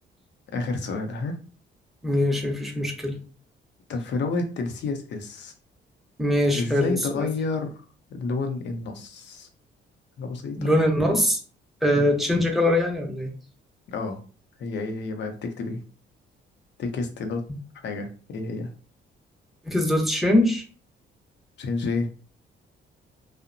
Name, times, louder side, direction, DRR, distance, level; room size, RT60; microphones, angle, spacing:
voice 1, 0.5-1.4 3.9-5.5 6.5-7.8 8.1-9.5 10.2-10.7 11.9-12.1 13.9-14.2 14.6-15.8 16.8-17.4 17.8-18.7 21.6-22.1, left 3 dB, 65° left, 5 dB, 0.6 m, -30 dB
voice 2, 2.0-3.2 6.2-7.3 10.6-11.4 11.8-13.3 19.7-20.6, left 1 dB, ahead, 1 dB, 0.6 m, -22 dB
2.7 x 2.1 x 2.5 m, 0.37 s
cardioid pair, 90°, 20 cm